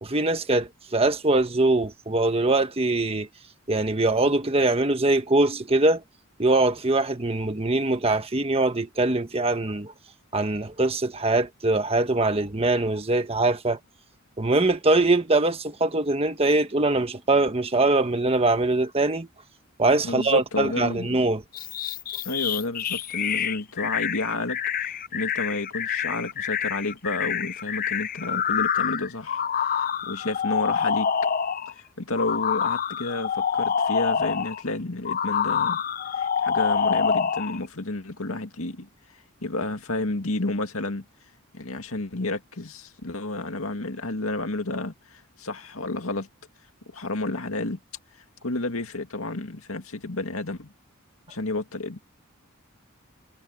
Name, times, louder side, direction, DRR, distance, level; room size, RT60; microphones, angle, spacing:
voice 1, 0.0-3.3 3.7-6.0 6.4-9.9 10.3-13.8 14.4-19.3 19.8-21.4, right 2 dB, 25° right, 1.3 m, -22 dB
voice 2, 20.0-21.1 22.2-31.1 32.0-35.8 36.2-38.9 39.4-41.0 41.5-46.3 46.9-47.8 48.4-50.7 51.3-52.0, left 2 dB, 75° left, 2.2 m, -31 dB
sound 1, 21.5-31.7 32.2-34.6 35.0-37.6, left 7 dB, 40° left, 0.6 m, -26 dB
head